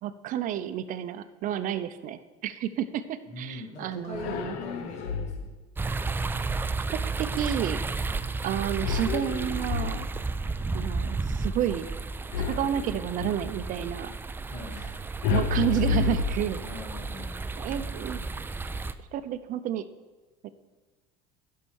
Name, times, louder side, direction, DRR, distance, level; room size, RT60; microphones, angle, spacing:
voice 1, 0.0-4.5 6.9-7.8 8.4-10.1 10.7-11.9 12.5-14.1 15.3-16.6 17.6-18.2 19.1-19.9 20.4-20.5, right 11 dB, 50° right, 12 dB, 0.7 m, -30 dB
voice 2, 3.3-5.5 14.5-14.9 16.6-17.5, left 1 dB, 40° left, -1 dB, 2.3 m, -42 dB
sound 1, 4.1-5.6 8.8-10.4 12.3-13.5 15.2-16.9, left 5 dB, 75° left, 0.9 m, -30 dB
sound 2, 5.8-18.9, right 3 dB, 10° right, 0.4 m, -33 dB
11.0 x 5.6 x 6.3 m, 1.2 s
supercardioid pair, 115°, 18 cm